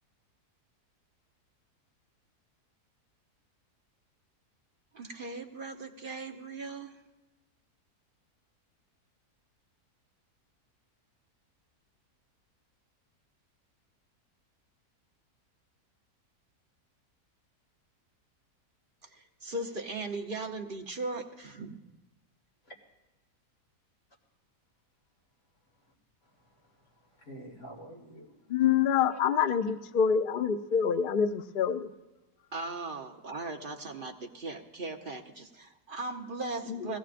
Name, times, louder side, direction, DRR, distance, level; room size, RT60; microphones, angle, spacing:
voice 1, 4.9-7.0 19.0-21.8 32.5-37.0, right 2 dB, 40° right, 3 dB, 0.9 m, -38 dB
voice 2, 26.2-28.4 29.1-29.2, right 1 dB, 50° left, -2 dB, 3.0 m, -49 dB
voice 3, 28.5-31.9 36.7-37.0, left 7 dB, 80° left, 10 dB, 0.4 m, -26 dB
20.5 x 16.5 x 2.5 m, 1.1 s
omnidirectional pair, 1.7 m